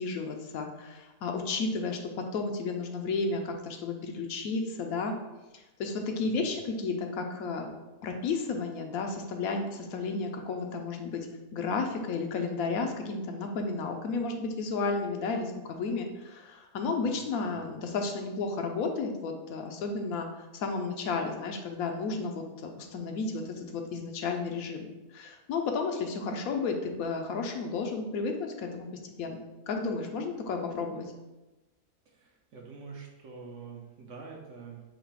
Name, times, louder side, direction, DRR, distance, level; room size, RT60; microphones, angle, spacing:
voice 1, 0.0-5.1 5.5-7.7 8.0-11.3 11.5-20.3 20.5-24.8 25.1-28.9 29.2-29.4 29.7-31.1, left 4 dB, 75° left, 4 dB, 1.0 m, -32 dB
voice 2, 6.2-6.6 17.0-17.7 32.1-34.8, right 5 dB, 60° right, 0 dB, 0.9 m, -47 dB
4.0 x 2.8 x 4.6 m, 1.1 s
omnidirectional pair, 1.6 m